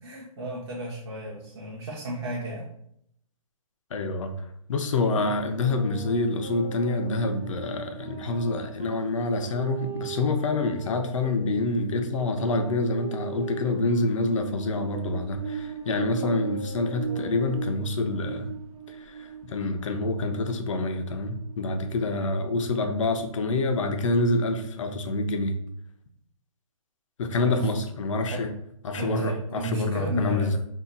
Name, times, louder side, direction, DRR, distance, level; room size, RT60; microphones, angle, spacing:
voice 1, 0.0-2.7 22.1-22.3 27.4-27.7 28.3-28.5 29.0-30.6, right 2 dB, 50° right, -4 dB, 0.7 m, -33 dB
voice 2, 3.9-4.3 4.7-18.5 19.0-25.6 27.2-28.5 28.8-30.6, left 2 dB, 60° left, 7 dB, 0.5 m, -27 dB
Wind instrument woodwind instrument, 5.5-11.4 12.2-17.9, right 4 dB, 15° right, 0.4 m, -40 dB
sound 1, 14.7-22.2, right 8 dB, 85° right, 0.4 m, -38 dB
2.8 x 2.1 x 3.8 m, 0.72 s
hypercardioid pair, 165°, 18 cm